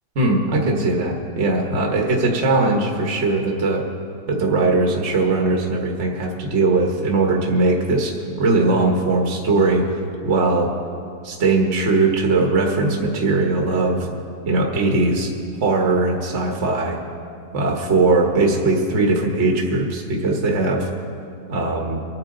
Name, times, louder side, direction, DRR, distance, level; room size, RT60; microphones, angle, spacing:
voice 1, 0.1-3.8 4.3-9.8 10.2-10.7 11.2-14.1 14.4-15.3 15.6-17.0 17.5-20.9 21.5-22.0, right 3 dB, 45° right, 1 dB, 1.4 m, -20 dB
24.0 x 9.3 x 3.8 m, 2.4 s
omnidirectional pair, 1.8 m